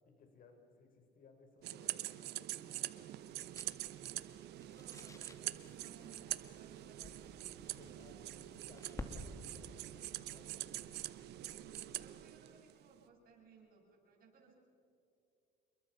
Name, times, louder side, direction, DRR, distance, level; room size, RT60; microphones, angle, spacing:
voice 1, 0.0-2.6 7.7-8.2 8.5-10.8, left 4 dB, 55° left, 5 dB, 4.4 m, -63 dB
sound 1, 1.6-12.2, left 2 dB, 20° left, 2.5 m, -55 dB
sound 2, 1.6-12.9, right 15 dB, 75° right, 1.0 m, -45 dB
voice 2, 3.7-7.6 11.2-14.6, right 5 dB, 60° right, -1 dB, 7.7 m, -63 dB
28.5 x 22.5 x 5.8 m, 2.7 s
cardioid pair, 110°, 17 cm